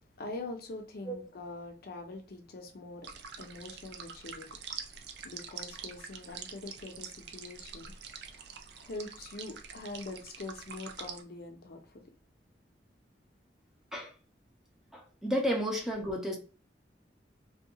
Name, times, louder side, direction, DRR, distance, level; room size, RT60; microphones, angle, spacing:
voice 1, 0.0-3.1 3.4-4.5 4.8-12.0, left 2 dB, 60° left, 0.5 m, -44 dB
sound 1, 3.0-11.2, right 6 dB, 65° right, 0.4 m, -45 dB
voice 2, 14.9-16.4, equal, 5° right, 0.5 m, -32 dB
2.6 x 2.2 x 2.7 m
head